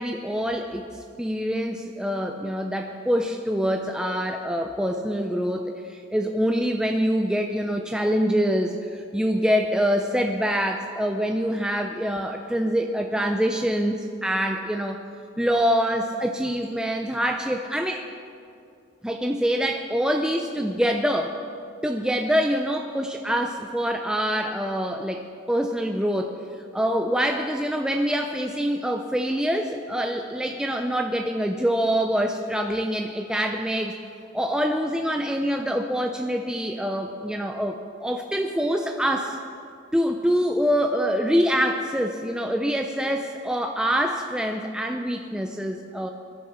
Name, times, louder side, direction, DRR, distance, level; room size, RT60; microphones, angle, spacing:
voice 1, 0.0-15.0 15.4-18.1 19.0-21.4 21.8-26.4 26.7-34.0 34.3-39.4 39.9-46.1, equal, 5° right, 3 dB, 0.4 m, -25 dB
21.5 x 11.0 x 4.3 m, 2.4 s
head